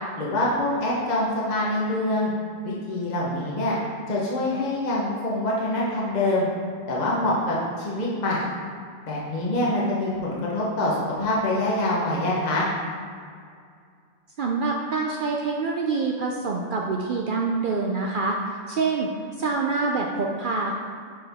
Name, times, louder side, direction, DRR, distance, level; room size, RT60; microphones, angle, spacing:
voice 1, 0.2-2.3 2.6-3.8 4.1-6.5 6.9-8.5 9.0-12.7, left 1 dB, 40° left, -5 dB, 1.0 m, -25 dB
voice 2, 14.4-18.4 18.7-19.1 19.4-20.7, right 4 dB, 65° right, 0 dB, 0.5 m, -26 dB
7.1 x 4.5 x 3.5 m, 2.2 s
omnidirectional pair, 1.3 m